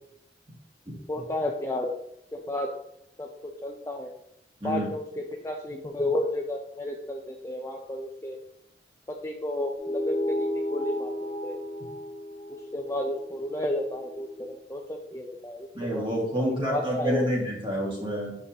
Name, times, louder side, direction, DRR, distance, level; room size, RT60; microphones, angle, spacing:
voice 1, 1.1-1.9 2.3-2.7 3.2-4.1 4.6-8.4 9.1-11.6 12.7-17.3, left 1 dB, 15° left, 1 dB, 0.4 m, -32 dB
sound 1, 9.8-14.6, left 1 dB, 35° left, 1.0 m, -33 dB
voice 2, 15.7-18.4, equal, 25° right, -3 dB, 1.9 m, -28 dB
8.1 x 5.1 x 2.8 m, 0.76 s
head